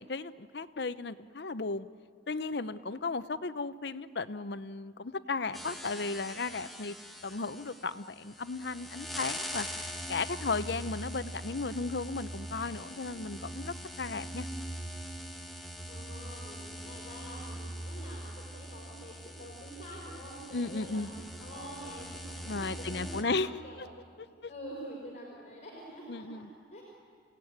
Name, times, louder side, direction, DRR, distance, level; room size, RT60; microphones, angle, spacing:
voice 1, 0.0-1.9 2.3-7.0 7.2-14.5 20.5-21.1 22.5-23.5 26.1-26.5, left 3 dB, 60° left, 14 dB, 0.7 m, -35 dB
sound 1, 5.5-23.2, equal, ahead, 1.7 m, -42 dB
voice 2, 15.8-23.8 24.3-26.8, equal, 35° left, -3 dB, 5.0 m, -47 dB
29.5 x 17.5 x 9.5 m, 2.1 s
head